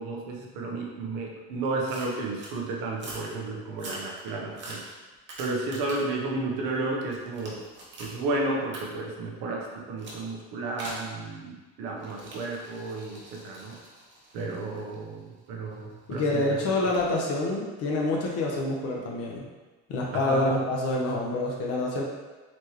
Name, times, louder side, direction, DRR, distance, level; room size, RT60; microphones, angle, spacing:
voice 1, 0.0-4.8 5.4-7.6 8.0-13.8 14.3-16.4 20.1-20.6, right 2 dB, 85° right, -1 dB, 0.9 m, -32 dB
sound 1, 1.9-2.6 2.9-3.3 3.7-6.2 6.6-8.2 8.7-8.8 10.0-10.2 10.8-11.1 12.0-15.9 16.9-17.1, right 2 dB, 35° right, 1.0 m, -44 dB
voice 2, 16.1-19.4 19.9-22.0, left 2 dB, 50° left, -2 dB, 0.8 m, -27 dB
4.3 x 3.2 x 3.0 m, 1.2 s
cardioid pair, 140°, 31 cm